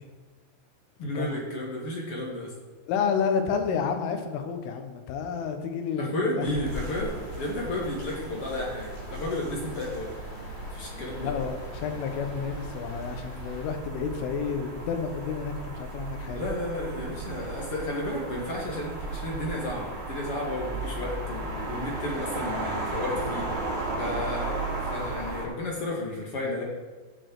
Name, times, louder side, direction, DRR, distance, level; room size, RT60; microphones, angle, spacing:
voice 1, 1.0-2.5 6.0-10.1 10.7-11.3 16.3-23.4 24.0-26.6, left 1 dB, 40° left, -3 dB, 2.2 m, -32 dB
voice 2, 2.9-6.5 11.2-16.4, left 6 dB, 85° left, 5 dB, 3.7 m, -30 dB
sound 1, 6.4-13.7, left 2 dB, 65° left, 4.2 m, -42 dB
sound 2, 6.7-25.5, right 3 dB, 60° right, 5.2 m, -35 dB
16.0 x 6.6 x 4.8 m, 1.4 s
omnidirectional pair, 5.6 m